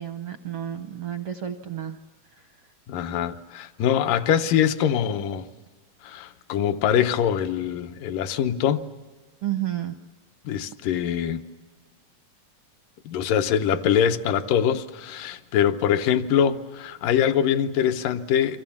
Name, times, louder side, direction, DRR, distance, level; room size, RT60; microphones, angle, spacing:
voice 1, 0.0-2.0 2.3-2.5 9.4-10.0, right 11 dB, 75° right, 8 dB, 1.4 m, -31 dB
voice 2, 2.9-5.5 6.0-8.8 10.5-11.4 13.1-18.6, left 9 dB, 80° left, 9 dB, 2.6 m, -23 dB
30.0 x 24.5 x 7.2 m, 1.3 s
omnidirectional pair, 3.8 m